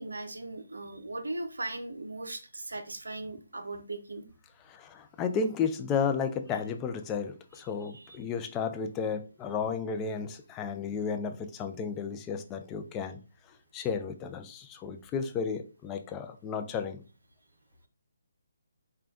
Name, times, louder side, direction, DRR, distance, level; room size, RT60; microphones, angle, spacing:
voice 1, 0.0-4.3 7.8-8.2, right 2 dB, 85° right, 8 dB, 0.6 m, -38 dB
voice 2, 4.7-13.2 13.7-17.0, left 6 dB, 15° left, 6 dB, 0.3 m, -33 dB
5.0 x 2.2 x 2.4 m, 0.34 s
figure-of-eight pair, 150°, 0 cm